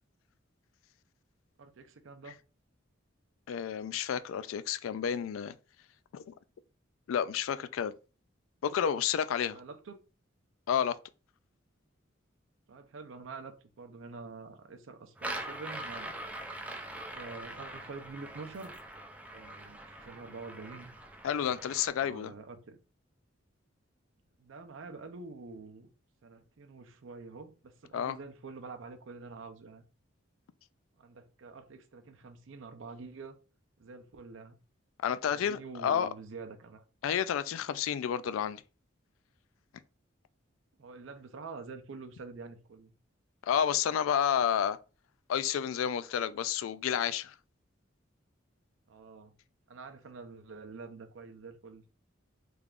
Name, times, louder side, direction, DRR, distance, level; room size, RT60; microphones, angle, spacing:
voice 1, 1.6-2.4 9.5-10.0 12.7-16.1 17.1-18.8 19.3-20.9 22.0-22.8 24.4-25.9 26.2-29.9 31.0-33.4 33.8-34.6 35.3-36.8 40.8-42.9 48.9-49.3 49.7-51.8, right 4 dB, 75° right, 0.5 m, -47 dB
voice 2, 3.5-5.5 6.1-6.3 7.1-7.9 8.6-9.6 10.7-10.9 21.2-22.3 27.9-28.2 35.0-36.1 37.0-38.6 43.4-44.8 45.3-47.3, left 8 dB, 85° left, 0.3 m, -30 dB
sound 1, 15.2-21.9, right 1 dB, 5° right, 0.3 m, -43 dB
3.5 x 3.3 x 2.4 m
head